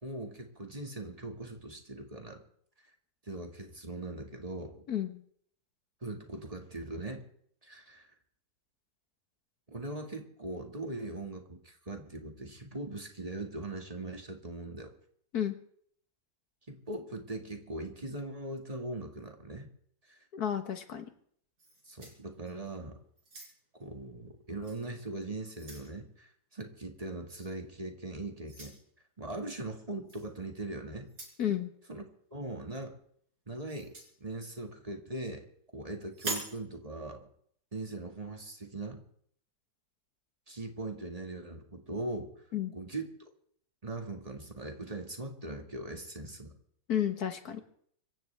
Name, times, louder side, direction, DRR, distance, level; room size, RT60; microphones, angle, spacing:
voice 1, 0.0-2.4 3.3-4.8 6.0-7.2 7.6-8.1 9.7-14.9 16.7-19.7 20.1-20.2 21.8-23.0 23.7-28.8 29.2-31.1 31.9-32.0 32.3-32.9 33.5-33.9 34.2-35.4 35.7-37.3 37.7-39.0 40.5-42.3 42.7-43.1 43.8-46.5, right 2 dB, 25° right, 3 dB, 2.0 m, -40 dB
voice 2, 4.9-5.2 15.3-15.6 20.3-21.1 31.4-31.7 42.5-42.8 46.9-47.6, left 10 dB, 75° left, 8 dB, 1.9 m, -32 dB
sound 1, 21.6-22.7 23.2-23.8 24.6-24.8 25.2-25.9 27.3-27.5 28.4-28.8 30.1-30.3 31.0-31.4 33.7-34.1 36.1-36.6, right 2 dB, 85° right, 5.2 m, -42 dB
25.0 x 15.0 x 3.5 m, 0.62 s
omnidirectional pair, 1.7 m